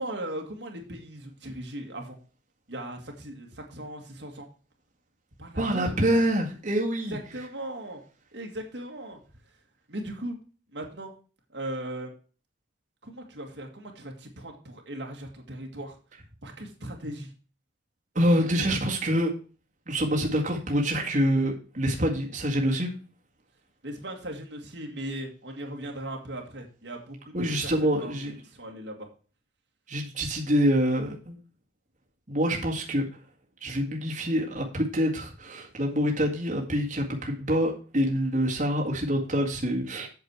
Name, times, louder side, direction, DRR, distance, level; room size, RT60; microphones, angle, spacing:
voice 1, 0.0-2.2 2.7-4.5 5.4-6.0 7.1-8.0 8.3-9.2 9.9-10.4 10.7-11.1 11.5-12.1 13.0-16.0 16.4-17.3 23.8-27.7 28.0-28.2 28.4-29.1, right 1 dB, 65° right, 2 dB, 1.9 m, -38 dB
voice 2, 5.6-7.2 18.2-19.3 19.9-22.9 27.3-28.3 29.9-31.4 32.3-33.1 33.6-40.1, equal, 40° right, -1 dB, 1.9 m, -26 dB
8.3 x 6.6 x 4.6 m, 0.37 s
head